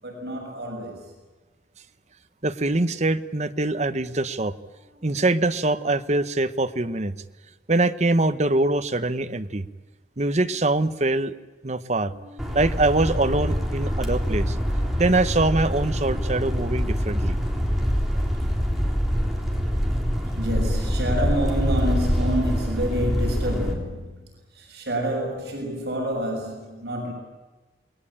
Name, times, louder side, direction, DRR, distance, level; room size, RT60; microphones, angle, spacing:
voice 1, 0.0-1.1 4.8-5.2 12.0-13.1 20.2-24.2 24.5-27.1, equal, 60° right, 6.9 m, -29 dB
voice 2, 2.4-4.5 5.0-7.1 7.7-9.6 10.2-11.3 11.6-12.1 12.5-14.6 15.0-17.4, right 2 dB, 40° right, 1.0 m, -23 dB
sound 1, 12.4-23.7, equal, ahead, 3.6 m, -25 dB
28.5 x 21.0 x 8.8 m
head